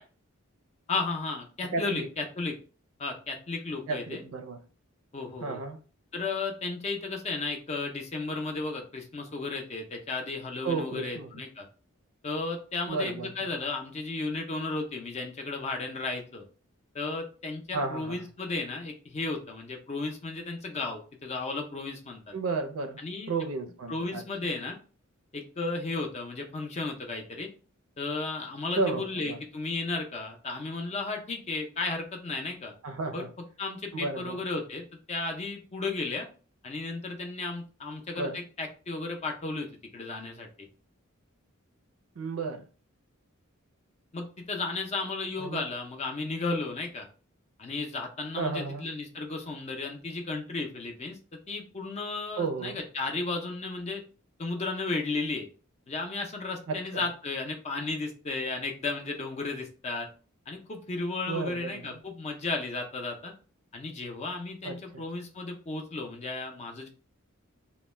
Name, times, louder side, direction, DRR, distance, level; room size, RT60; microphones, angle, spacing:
voice 1, 0.9-2.5 3.0-4.2 5.1-5.6 6.1-11.7 12.2-16.4 16.9-22.3 23.0-23.3 23.9-24.8 25.3-27.5 28.0-32.7 33.1-33.3 33.6-36.3 36.6-40.5 44.1-47.1 47.6-51.2 51.5-54.0 54.4-55.4 55.9-60.1 60.5-63.3 63.7-66.9, left 3 dB, 30° left, 0.5 m, -34 dB
voice 2, 1.7-2.1 3.9-4.6 5.4-5.8 10.6-11.3 12.9-13.5 17.7-18.3 22.3-23.0 23.3-24.2 28.8-29.4 32.8-33.3 33.9-34.4 38.2-38.4 42.2-42.7 45.4-45.6 48.4-48.8 52.4-52.8 56.7-57.0 61.3-62.0 64.6-65.0, right 3 dB, 75° right, 0.5 m, -33 dB
2.1 x 2.1 x 3.1 m
head